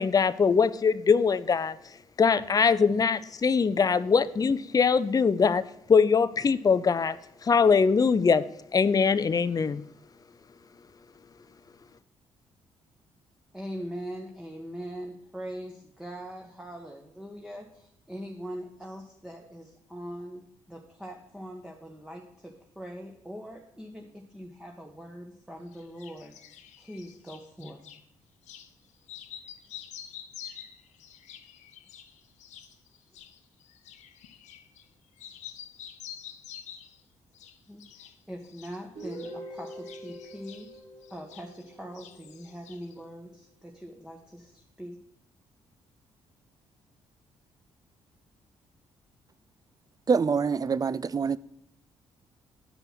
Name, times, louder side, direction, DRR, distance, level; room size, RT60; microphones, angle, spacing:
voice 1, 0.0-1.8 2.2-5.6 5.9-7.2 7.4-8.4 8.7-9.8, left 5 dB, 30° left, 0.5 m, -22 dB
voice 2, 13.5-26.3 26.8-27.8 33.1-33.2 37.7-40.8 41.1-45.0, equal, 5° right, 1.3 m, -42 dB
sound 1, 25.7-28.0 28.4-28.7 29.0-34.9 35.2-37.0 37.3-38.2 38.4-41.7 41.9-43.0, left 10 dB, 75° left, 0.8 m, -48 dB
Guitar, 39.0-42.8, right 1 dB, 65° right, 3.8 m, -44 dB
voice 3, 50.1-51.4, right 5 dB, 30° right, 0.4 m, -25 dB
9.1 x 5.4 x 6.0 m
supercardioid pair, 55°, 12 cm